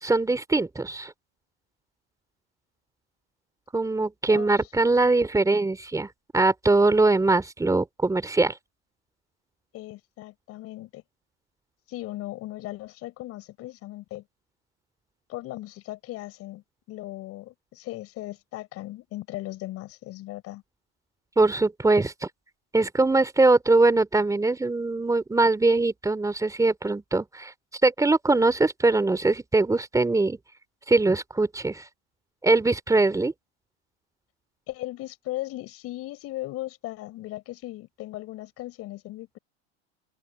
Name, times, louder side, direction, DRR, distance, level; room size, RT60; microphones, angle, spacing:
voice 1, 0.0-1.1 3.7-6.1 6.3-8.6 21.4-22.1 22.7-27.5 27.8-30.4 30.9-31.8 32.4-33.3, right 3 dB, 10° right, 3.8 m, -22 dB
voice 2, 9.7-11.0 11.9-14.2 15.3-20.6 34.7-39.4, left 17 dB, 45° left, 5.8 m, -37 dB
hypercardioid pair, 110°, 32 cm